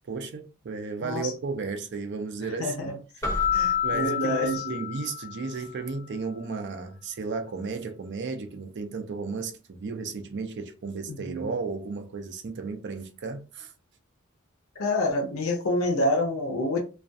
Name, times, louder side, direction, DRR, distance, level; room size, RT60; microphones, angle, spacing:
voice 1, 0.0-2.9 3.8-13.7, right 4 dB, 55° right, 0.4 m, -34 dB
voice 2, 1.0-1.3 2.6-3.0 3.5-4.8 11.1-11.5 14.8-16.8, left 1 dB, 75° left, 0.6 m, -27 dB
Keyboard (musical), 3.2-5.6, left 8 dB, 15° left, 0.8 m, -28 dB
2.3 x 2.2 x 2.5 m
head